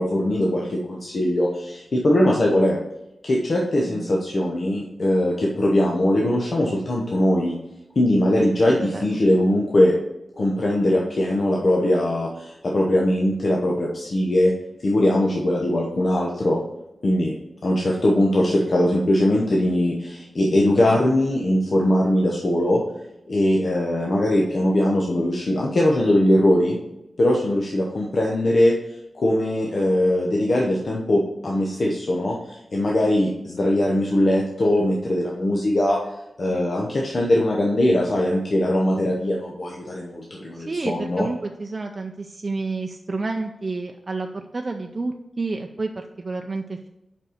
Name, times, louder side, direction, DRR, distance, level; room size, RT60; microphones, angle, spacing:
voice 1, 0.0-2.8 3.2-7.6 8.0-9.9 10.4-14.5 14.8-16.6 17.0-17.3 17.6-22.8 23.3-26.8 27.2-28.7 29.1-36.0 36.4-41.3, left 1 dB, 55° left, -2 dB, 0.9 m, -21 dB
voice 2, 3.8-4.2 8.8-9.1 36.5-36.7 40.6-46.9, right 3 dB, 40° right, 3 dB, 0.5 m, -30 dB
5.4 x 5.3 x 6.4 m, 0.89 s
wide cardioid pair, 105°, 0 cm